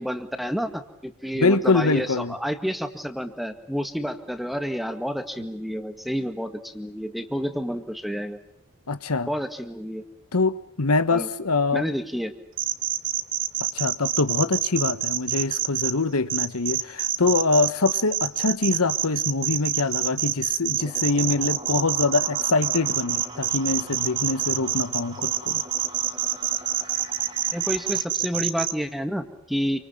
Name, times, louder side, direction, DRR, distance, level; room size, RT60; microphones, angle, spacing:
voice 1, 0.0-8.4 9.3-10.0 11.1-11.3 11.7-12.3 27.5-29.8, equal, ahead, 8 dB, 1.9 m, -29 dB
voice 2, 1.3-2.3 8.9-9.3 10.3-11.8 13.7-25.6, left 3 dB, 80° left, 12 dB, 1.3 m, -24 dB
sound 1, 12.6-15.9 16.3-28.7, right 12 dB, 60° right, 1.6 m, -26 dB
sound 2, 20.8-28.0, right 2 dB, 25° right, 2.9 m, -42 dB
28.5 x 25.0 x 7.3 m, 0.64 s
head